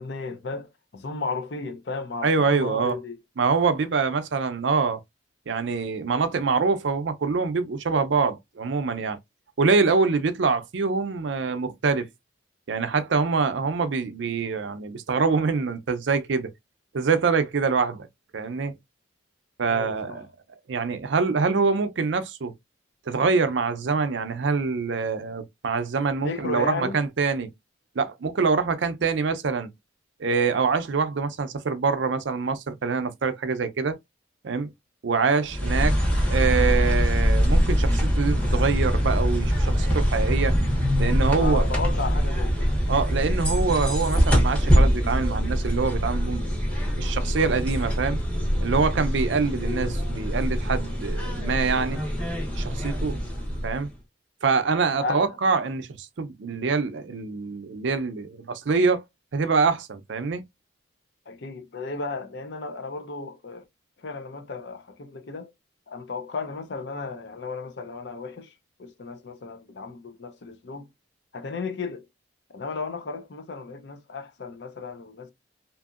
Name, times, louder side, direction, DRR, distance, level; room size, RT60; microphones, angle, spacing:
voice 1, 0.0-3.2 19.7-20.2 26.2-27.0 41.3-42.7 55.0-55.3 61.3-63.6 64.0-65.5 65.9-68.5 68.8-70.9 71.3-72.0 72.5-75.3, left 4 dB, 60° left, 0.5 m, -34 dB
voice 2, 2.2-3.0 3.4-5.0 5.5-9.2 9.6-12.1 12.7-16.5 16.9-18.1 18.3-18.7 19.6-20.3 20.7-22.5 23.1-27.5 28.0-29.7 30.2-34.0 34.4-34.7 35.0-36.0 36.3-40.6 41.0-41.6 42.9-46.4 47.0-48.2 48.6-52.0 52.6-53.2 53.6-53.9 54.4-59.0 59.3-60.4, right 4 dB, 65° right, 0.5 m, -25 dB
sound 1, 35.5-53.9, equal, 5° left, 0.7 m, -23 dB
2.8 x 2.6 x 2.4 m
head